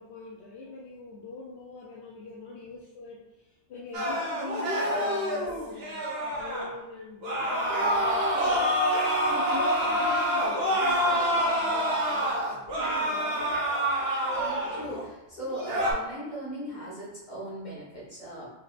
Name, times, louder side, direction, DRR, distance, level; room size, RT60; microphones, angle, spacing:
voice 1, 0.0-8.8 9.0-13.5, left 3 dB, 75° left, -4 dB, 0.9 m, -43 dB
sound 1, 3.9-6.7 7.2-15.0 15.5-15.9, equal, 65° right, 1.0 m, -27 dB
voice 2, 14.3-18.5, right 1 dB, 40° left, -7 dB, 1.8 m, -38 dB
4.7 x 3.3 x 2.5 m, 0.98 s
omnidirectional pair, 1.1 m